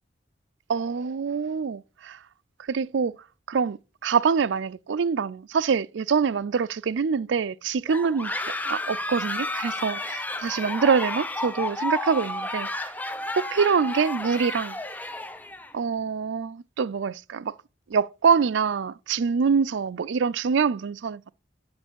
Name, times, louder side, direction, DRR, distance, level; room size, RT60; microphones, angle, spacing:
voice 1, 0.7-2.2 2.7-3.2 3.5-8.3 8.6-12.9 13.4-14.8 15.7-17.6 17.9-21.3, right 6 dB, 75° right, 0.4 m, -25 dB
sound 1, 7.9-15.7, left 2 dB, 10° left, 0.6 m, -32 dB
9.5 x 5.2 x 7.3 m
head